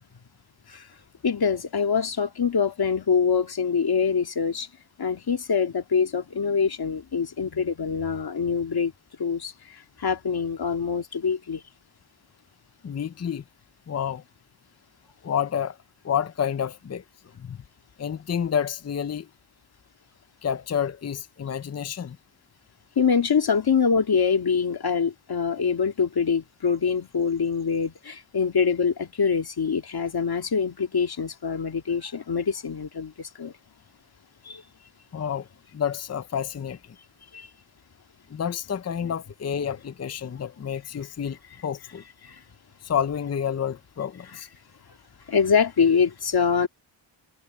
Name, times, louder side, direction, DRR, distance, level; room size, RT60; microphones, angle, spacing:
voice 1, 1.2-4.7 5.0-8.9 9.2-11.6 23.0-33.5 34.5-34.6 37.3-37.5 42.2-42.4 45.3-46.7, left 6 dB, 50° left, 2.2 m, -24 dB
voice 2, 12.8-13.4 13.9-14.2 15.2-15.8 16.0-17.0 17.4-17.6 18.0-19.3 20.4-22.2 35.1-35.5 35.7-37.0 38.3-41.4 41.6-42.0 42.8-44.5, left 8 dB, 35° left, 0.7 m, -29 dB
wide cardioid pair, 115°, 48 cm